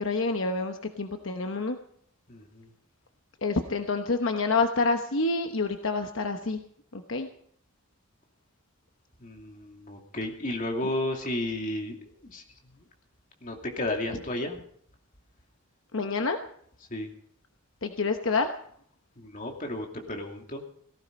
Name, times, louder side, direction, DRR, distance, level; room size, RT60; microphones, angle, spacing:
voice 1, 0.0-1.8 3.4-6.6 6.9-7.3 15.9-16.4 17.8-18.5, left 3 dB, 65° left, 6 dB, 1.0 m, -27 dB
voice 2, 2.3-2.7 9.2-12.0 12.2-12.4 13.4-14.6 16.9-17.1 19.2-20.6, left 1 dB, 40° left, 2 dB, 2.7 m, -33 dB
18.0 x 15.0 x 5.3 m, 0.63 s
head